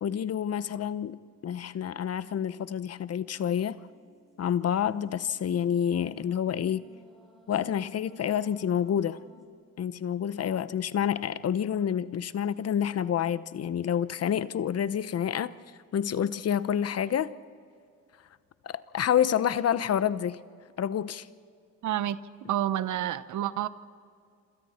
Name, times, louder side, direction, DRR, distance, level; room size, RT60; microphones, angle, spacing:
voice 1, 0.0-3.8 4.4-6.8 7.5-9.2 9.8-15.5 15.9-17.3 18.6-20.4 20.8-21.3, left 9 dB, 55° left, 15 dB, 0.9 m, -28 dB
sound 1, 3.4-9.5, left 3 dB, ahead, 5.7 m, -59 dB
voice 2, 21.8-22.2 22.5-23.7, right 12 dB, 75° right, 14 dB, 1.0 m, -29 dB
27.5 x 27.0 x 4.4 m, 2.3 s
cardioid pair, 90°, 30 cm